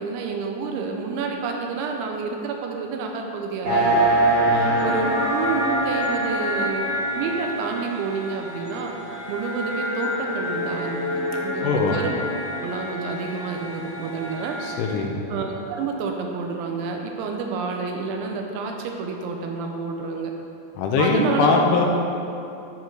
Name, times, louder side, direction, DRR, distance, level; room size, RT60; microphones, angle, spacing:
voice 1, 0.0-4.0 4.8-6.9 7.2-8.9 9.3-12.2 12.6-14.6 15.3-20.3 21.0-21.5, right 5 dB, 80° right, 2 dB, 2.9 m, -29 dB
sound 1, 3.6-15.1, right 1 dB, 50° right, 2.1 m, -25 dB
voice 2, 4.5-4.8 11.6-12.0 14.6-15.1 20.8-21.9, left 4 dB, 80° left, 1 dB, 3.1 m, -21 dB
11.5 x 4.4 x 4.7 m, 2.7 s
omnidirectional pair, 5.6 m